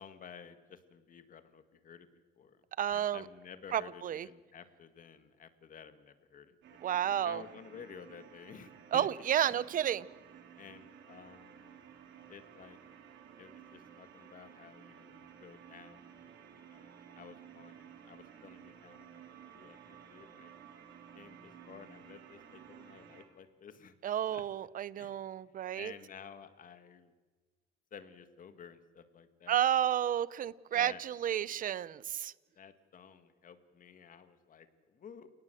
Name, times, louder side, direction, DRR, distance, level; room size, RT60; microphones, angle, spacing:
voice 1, 0.0-2.1 2.4-2.6 2.9-6.8 7.1-9.1 9.5-9.6 10.6-11.8 12.3-12.8 13.4-19.3 19.5-20.5 21.1-23.9 24.3-24.4 25.0-25.2 25.4-27.1 27.9-29.9 30.7-31.0 32.6-35.3, left 7 dB, 45° left, 10 dB, 1.8 m, -53 dB
voice 2, 2.8-3.2 3.7-4.3 6.8-7.4 8.9-10.1 24.0-25.9 29.5-32.3, right 10 dB, 45° right, 20 dB, 0.7 m, -31 dB
sound 1, 6.6-23.2, right 8 dB, 75° right, 3.8 m, -55 dB
29.5 x 18.5 x 7.7 m, 1.4 s
cardioid pair, 150°, 19 cm